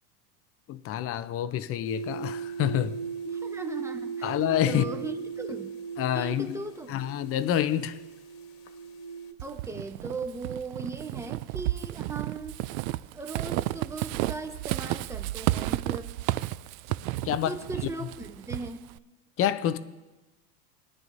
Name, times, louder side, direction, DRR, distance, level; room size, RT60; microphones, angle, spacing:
voice 1, 0.7-2.9 4.2-4.9 6.0-6.6 6.9-8.0 17.2-17.5 19.4-19.8, left 11 dB, 30° left, 0.6 m, -27 dB
sound 1, 1.8-9.3, right 6 dB, 60° left, 1.6 m, -38 dB
voice 2, 3.2-4.4 4.6-5.8 6.1-7.0 9.4-12.6 13.1-16.1 17.3-18.9, right 3 dB, 5° right, 0.9 m, -38 dB
Walk footsteps / Squeak, 9.4-19.0, right 17 dB, 60° right, 0.5 m, -32 dB
22.0 x 10.5 x 2.7 m
supercardioid pair, 120°, 48 cm